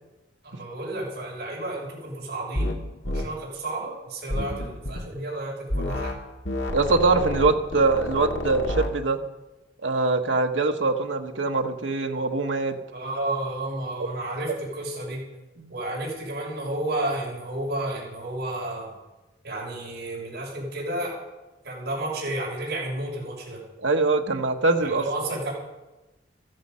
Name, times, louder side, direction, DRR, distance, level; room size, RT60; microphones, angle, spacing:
voice 1, 0.4-6.1 12.9-15.2 15.7-18.9 19.4-21.1 21.6-23.6 24.8-25.5, right 1 dB, 55° right, -3 dB, 6.2 m, -31 dB
sound 1, 2.5-2.8 3.0-3.3 4.3-5.0 5.7-6.2 6.4-8.9, left 1 dB, 70° left, 1.7 m, -29 dB
voice 2, 6.7-9.2 9.8-12.7 15.6-15.7 23.8-25.0, right 3 dB, 80° right, 4 dB, 1.2 m, -23 dB
15.0 x 14.5 x 5.6 m, 1.1 s
head